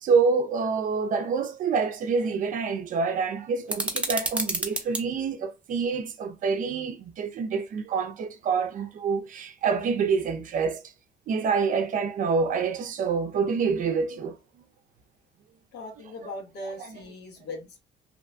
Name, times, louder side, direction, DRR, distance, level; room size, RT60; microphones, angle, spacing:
voice 1, 0.0-10.8 11.3-14.4, right 5 dB, 50° right, 0.5 m, -27 dB
sound 1, 3.7-5.0, right 2 dB, 5° right, 0.6 m, -29 dB
voice 2, 15.7-17.8, left 2 dB, 75° left, 1.2 m, -39 dB
2.8 x 2.2 x 2.5 m
cardioid pair, 110°, 17 cm